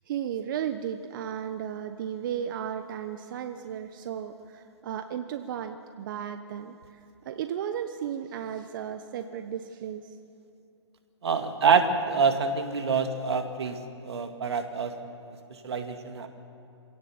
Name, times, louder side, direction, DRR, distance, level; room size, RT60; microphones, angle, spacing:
voice 1, 0.1-10.0, right 9 dB, 45° right, 8 dB, 1.1 m, -34 dB
voice 2, 11.2-13.8 14.0-14.9 15.6-16.3, right 5 dB, 65° right, 6 dB, 2.3 m, -26 dB
26.0 x 17.5 x 7.3 m, 2.7 s
figure-of-eight pair, 130°, 15 cm